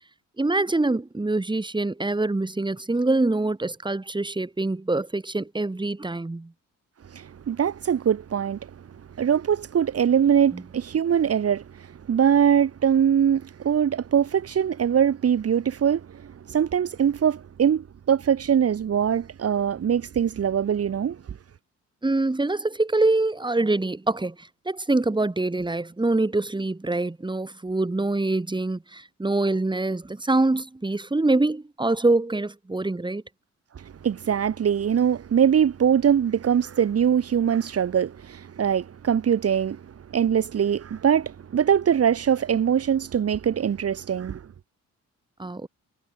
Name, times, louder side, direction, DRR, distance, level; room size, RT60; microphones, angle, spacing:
voice 1, 0.4-6.5 10.5-10.6 22.0-33.2 45.4-45.7, right 2 dB, 15° right, 6.0 m, -25 dB
voice 2, 7.1-8.7 9.2-21.2 33.8-39.8 40.1-44.4, right 8 dB, 50° right, 2.9 m, -22 dB
cardioid pair, 90°, 30 cm